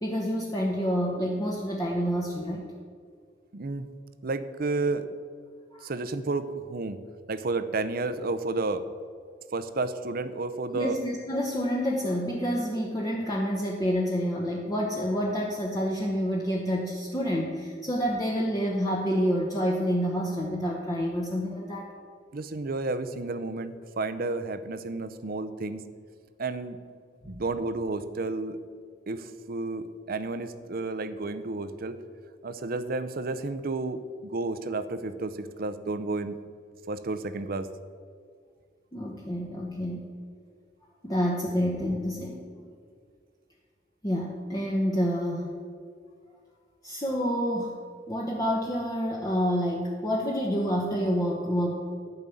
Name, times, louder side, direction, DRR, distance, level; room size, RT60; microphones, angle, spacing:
voice 1, 0.0-2.6 5.7-5.9 10.7-21.9 38.9-40.1 41.0-42.4 44.0-45.5 46.8-47.8 48.1-51.7, equal, 20° left, -3 dB, 1.0 m, -28 dB
voice 2, 3.5-3.9 4.2-5.1 5.8-7.0 7.3-8.9 9.5-11.0 22.3-25.8 26.4-26.8 27.3-28.6 29.1-32.0 32.4-36.4 36.9-37.7, right 3 dB, 50° right, 11 dB, 0.6 m, -31 dB
11.0 x 5.4 x 8.3 m, 2.1 s
head